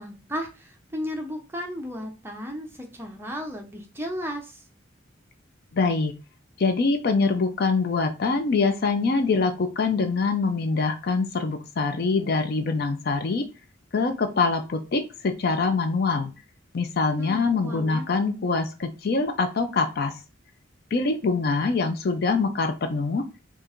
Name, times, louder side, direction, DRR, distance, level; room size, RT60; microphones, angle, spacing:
voice 1, 0.0-4.6 17.2-18.0, equal, 10° right, 2 dB, 0.6 m, -34 dB
voice 2, 5.7-6.1 6.6-13.5 13.9-16.3 16.7-20.1 20.9-23.2, left 4 dB, 50° left, 7 dB, 0.4 m, -24 dB
4.4 x 2.4 x 2.5 m, 0.31 s
head